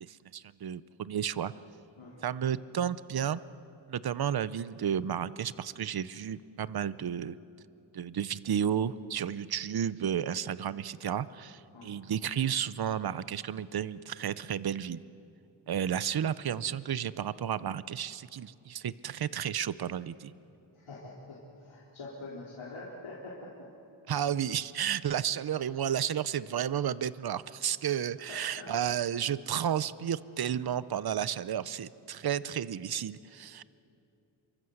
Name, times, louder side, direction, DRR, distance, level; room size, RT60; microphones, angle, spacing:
voice 1, 0.0-1.5 2.2-3.4 3.9-7.4 7.9-15.0 15.7-20.3 24.1-33.6, right 9 dB, 50° right, 17 dB, 0.7 m, -32 dB
voice 2, 2.0-2.3 11.7-12.0 20.7-23.7 26.5-26.6 28.2-28.7, left 2 dB, 75° left, -5 dB, 3.7 m, -45 dB
28.0 x 24.0 x 7.9 m, 2.7 s
wide cardioid pair, 105°, 47 cm